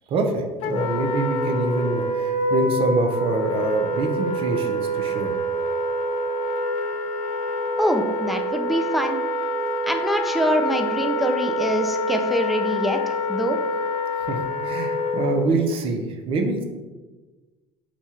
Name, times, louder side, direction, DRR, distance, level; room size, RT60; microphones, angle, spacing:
voice 1, 0.1-5.3 14.3-16.6, right 3 dB, 50° right, 5 dB, 0.7 m, -25 dB
Wind instrument woodwind instrument, 0.6-15.5, left 1 dB, 60° left, 0.5 m, -26 dB
voice 2, 7.8-9.2 9.8-13.6, equal, ahead, 5 dB, 0.4 m, -24 dB
4.2 x 2.3 x 4.3 m, 1.2 s
supercardioid pair, 110°, 12 cm